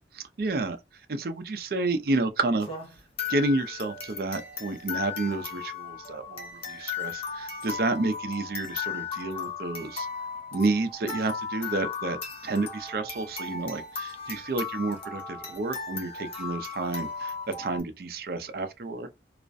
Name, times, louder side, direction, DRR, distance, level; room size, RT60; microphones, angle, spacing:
voice 1, 0.4-0.8 1.1-2.7 3.3-10.1 10.5-12.2 12.4-17.3 17.6-19.1, right 2 dB, 55° right, 0.4 m, -30 dB
sound 1, 2.6-17.8, left 5 dB, 30° left, 0.6 m, -36 dB
2.4 x 2.1 x 2.5 m
head